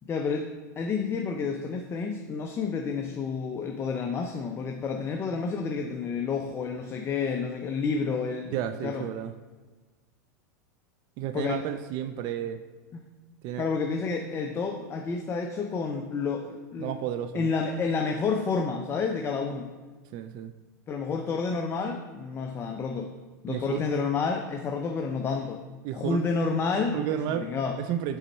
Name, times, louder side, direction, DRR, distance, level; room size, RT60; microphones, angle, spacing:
voice 1, 0.0-0.5 0.8-8.6 8.8-9.1 11.3-11.6 12.9-13.0 13.6-17.0 17.3-19.7 20.9-23.1 23.4-25.6 25.9-27.0 27.2-27.8, left 5 dB, 25° left, 3 dB, 0.5 m, -30 dB
voice 2, 8.4-9.3 11.2-12.6 13.4-13.8 16.8-17.5 20.1-20.5 23.5-23.8 25.8-26.2 26.9-27.5 27.8-28.2, right 10 dB, 50° right, 9 dB, 0.4 m, -32 dB
5.5 x 4.0 x 4.5 m, 1.3 s
hypercardioid pair, 100°, 10 cm